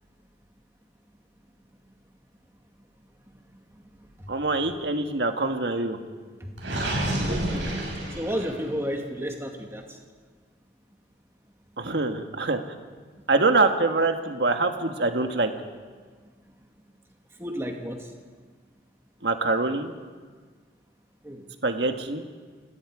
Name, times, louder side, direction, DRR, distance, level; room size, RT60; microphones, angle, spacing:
voice 1, 4.3-6.0 11.8-12.6 13.3-15.5 19.2-19.9 21.6-22.2, right 3 dB, 70° right, 6 dB, 1.6 m, -24 dB
Gurgling, 6.6-8.7, right 1 dB, 85° right, 6.3 m, -29 dB
voice 2, 8.2-10.0 17.4-18.1 21.2-21.4, equal, 15° right, 2 dB, 2.3 m, -32 dB
29.5 x 18.0 x 5.0 m, 1.5 s
head